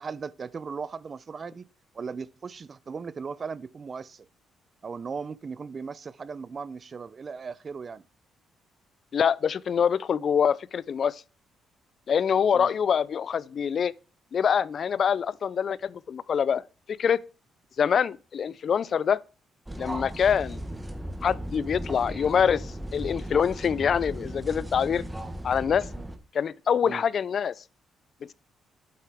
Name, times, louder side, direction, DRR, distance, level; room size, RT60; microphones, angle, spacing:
voice 1, 0.0-1.7 1.9-4.3 4.8-8.0 12.5-12.7 25.9-26.1 26.8-27.0, right 5 dB, 40° right, 0.4 m, -37 dB
voice 2, 9.1-11.2 12.1-13.9 14.3-16.6 16.9-17.2 17.8-19.2 19.8-20.6 21.2-25.0 25.4-25.9 26.3-27.5, left 7 dB, 55° left, 0.3 m, -25 dB
sound 1, 19.7-26.2, right 1 dB, 10° right, 1.3 m, -36 dB
8.5 x 7.6 x 3.4 m
cardioid pair, 90°, 0 cm